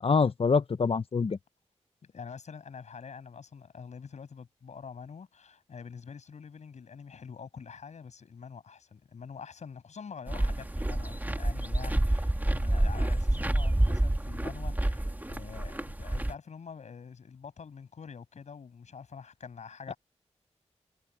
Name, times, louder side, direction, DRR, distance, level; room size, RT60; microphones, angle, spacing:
voice 1, 0.0-1.4 19.9-20.0, left 5 dB, 55° left, 0.9 m, -25 dB
voice 2, 2.0-20.0, left 6 dB, 85° left, 7.5 m, -46 dB
sound 1, 10.3-16.3, right 1 dB, 15° right, 2.1 m, -28 dB
cardioid pair, 65°, 12 cm